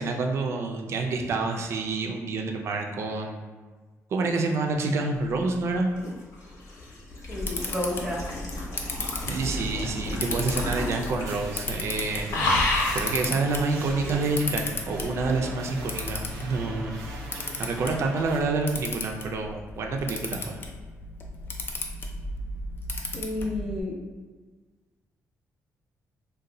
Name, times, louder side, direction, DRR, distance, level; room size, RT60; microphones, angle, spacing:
voice 1, 0.0-3.5 4.1-5.9 9.3-12.3 12.6-17.0 17.6-20.6, right 3 dB, 50° right, 3 dB, 0.4 m, -28 dB
sound 1, 5.7-11.4 11.7-12.0 12.3-13.1 14.0-14.2, left 2 dB, 65° left, 0.9 m, -30 dB
Camera, 7.1-23.8, left 3 dB, 40° left, 0.4 m, -36 dB
voice 2, 7.3-8.2 23.1-23.9, left 1 dB, 10° right, -3 dB, 0.7 m, -31 dB
sound 2, 9.8-18.4, right 2 dB, 90° right, 0.7 m, -42 dB
2.6 x 2.2 x 3.9 m, 1.4 s
cardioid pair, 135°, 6 cm